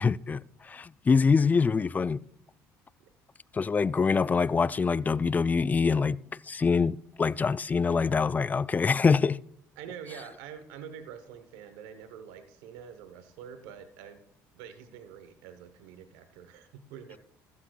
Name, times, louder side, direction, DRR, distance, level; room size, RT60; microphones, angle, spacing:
voice 1, 0.0-2.2 3.5-6.2 6.5-9.4, left 5 dB, 25° left, 0.3 m, -25 dB
voice 2, 9.8-14.2 14.5-17.2, right 8 dB, 90° right, 0.9 m, -46 dB
14.0 x 12.5 x 2.3 m
supercardioid pair, 85°, 7 cm